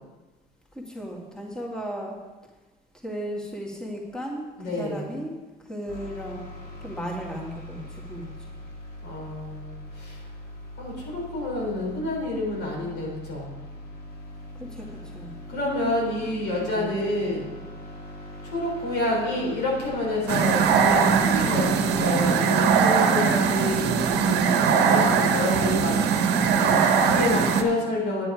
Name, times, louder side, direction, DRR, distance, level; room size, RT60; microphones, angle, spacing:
voice 1, 0.7-2.2 3.0-5.3 5.6-6.5 6.8-8.3 14.6-15.3 16.2-17.2 26.4-26.8, equal, 5° left, -2 dB, 2.0 m, -36 dB
voice 2, 4.6-5.2 9.0-10.3 10.8-13.6 15.5-17.5 18.4-26.0 26.6-26.7 27.0-28.3, left 2 dB, 85° left, -3 dB, 4.1 m, -29 dB
sound 1, 5.9-21.9, left 1 dB, 65° left, 2.4 m, -41 dB
sound 2, 20.3-27.6, right 6 dB, 85° right, 1.0 m, -21 dB
9.8 x 8.9 x 5.0 m, 1.2 s
cardioid pair, 110°, 17 cm